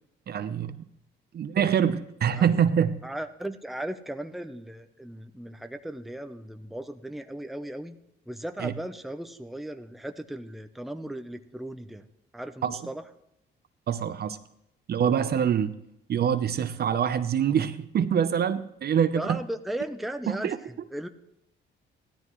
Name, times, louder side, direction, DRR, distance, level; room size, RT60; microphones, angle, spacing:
voice 1, 0.3-0.8 1.3-3.0 8.6-8.7 12.6-12.8 13.9-14.4 14.9-15.8 16.1-19.4 20.3-20.6, right 8 dB, 55° right, 0.8 m, -25 dB
voice 2, 3.0-8.0 8.3-12.1 12.3-13.0 19.1-21.1, right 1 dB, ahead, 0.8 m, -36 dB
16.0 x 12.5 x 3.1 m
cardioid pair, 90°, 20 cm